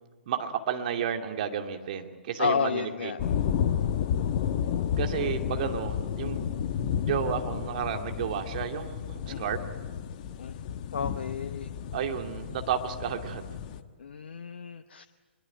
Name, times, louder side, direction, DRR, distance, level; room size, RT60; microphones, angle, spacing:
voice 1, 0.3-3.1 5.0-6.7 7.0-9.6 11.9-13.5, right 8 dB, 45° right, 4 dB, 2.5 m, -32 dB
voice 2, 2.4-3.2 9.3-9.4 10.4-10.5 10.9-11.7 14.0-15.0, left 6 dB, 60° left, 8 dB, 1.0 m, -31 dB
sound 1, 3.2-13.8, left 8 dB, 40° left, 1.3 m, -31 dB
24.5 x 22.5 x 9.2 m, 1.4 s
figure-of-eight pair, 125°, 6 cm